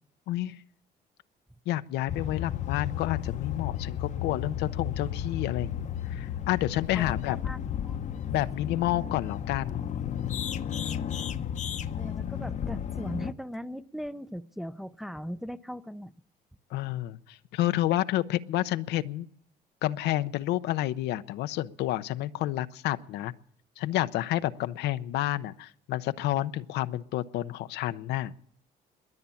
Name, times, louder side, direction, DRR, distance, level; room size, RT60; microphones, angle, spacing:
voice 1, 0.3-0.6 1.7-7.4 8.3-10.5 16.7-19.3 19.8-23.3 23.8-28.3, left 14 dB, 80° left, 13 dB, 0.7 m, -30 dB
sound 1, 2.1-13.3, left 9 dB, 45° left, 0.8 m, -33 dB
voice 2, 6.9-8.0 8.2-8.4 12.0-16.1, equal, ahead, 12 dB, 0.5 m, -39 dB
21.5 x 8.7 x 7.0 m, 0.65 s
cardioid pair, 110°, 17 cm